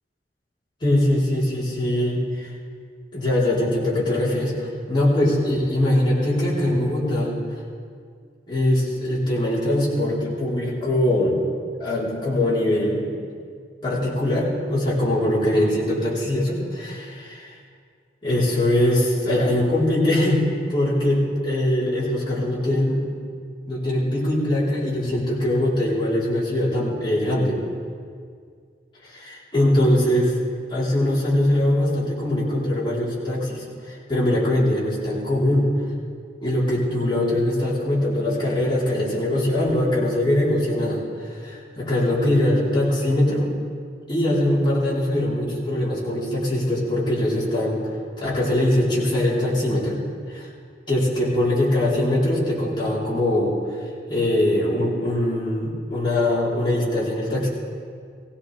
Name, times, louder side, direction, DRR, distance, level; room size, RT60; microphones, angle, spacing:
voice 1, 0.8-2.5 3.1-7.3 8.5-11.4 11.8-13.2 13.8-17.5 18.2-23.0 23.7-27.6 29.0-30.3 30.7-33.6 34.1-35.7 36.4-43.5 44.1-47.8 48.2-50.0 50.3-50.5 50.9-53.5 54.1-57.5, left 1 dB, 25° left, -7 dB, 3.7 m, -22 dB
19.0 x 16.5 x 3.3 m, 2.1 s
head